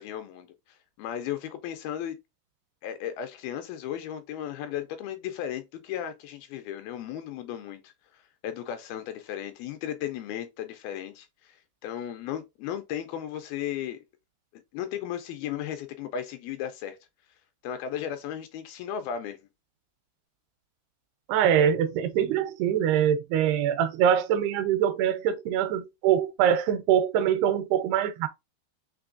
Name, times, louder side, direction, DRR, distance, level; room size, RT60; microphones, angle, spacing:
voice 1, 0.0-2.2 2.8-14.0 14.5-17.0 17.6-19.4, left 10 dB, 80° left, 2.3 m, -35 dB
voice 2, 21.3-28.3, right 9 dB, 85° right, 2.6 m, -24 dB
6.0 x 3.1 x 2.5 m
omnidirectional pair, 4.7 m